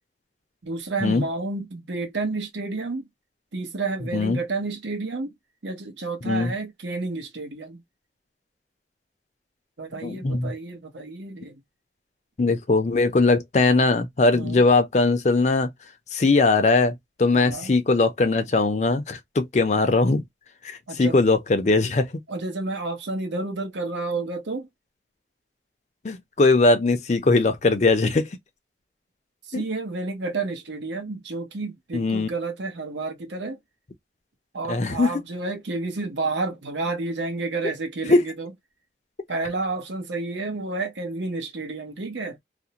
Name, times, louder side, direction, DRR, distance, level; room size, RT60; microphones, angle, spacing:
voice 1, 0.6-3.0 3.5-5.3 5.6-7.8 9.8-11.6 14.3-14.6 17.3-17.7 20.9-21.1 22.3-24.7 29.5-33.6 34.5-38.5 39.3-42.4, right 3 dB, 80° right, 0.8 m, -30 dB
voice 2, 10.0-10.5 12.4-15.7 16.1-16.9 17.2-20.2 21.0-22.1 26.0-28.3 29.5-29.6 31.9-32.3 34.7-35.1 38.1-38.2, left 3 dB, 40° left, 0.4 m, -20 dB
2.5 x 2.0 x 2.8 m
head